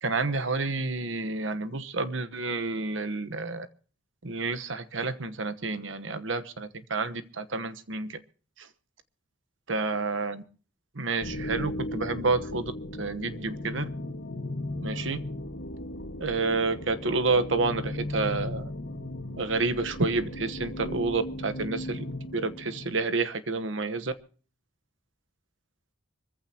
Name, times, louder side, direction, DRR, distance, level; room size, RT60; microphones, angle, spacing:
voice 1, 0.0-3.7 4.2-8.2 8.6-8.7 9.7-10.4 10.9-12.7 13.0-13.8 14.8-15.2 16.2-18.7 19.4-22.0 22.3-24.1, right 3 dB, 70° right, 10 dB, 1.2 m, -29 dB
sound 1, 11.2-23.2, left 1 dB, 70° left, 1.8 m, -36 dB
25.5 x 15.0 x 2.9 m, 0.40 s
head